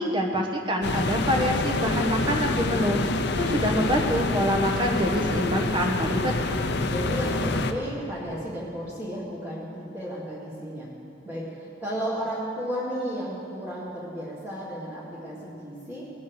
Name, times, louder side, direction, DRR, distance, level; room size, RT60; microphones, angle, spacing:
voice 1, 0.0-3.0 3.3-6.3, equal, 25° right, 2 dB, 1.2 m, -25 dB
sound 1, 0.8-7.7, left 2 dB, 60° left, 0.7 m, -27 dB
voice 2, 6.9-10.9 11.2-16.0, equal, 10° right, -10 dB, 1.8 m, -33 dB
20.0 x 7.3 x 4.8 m, 2.6 s
head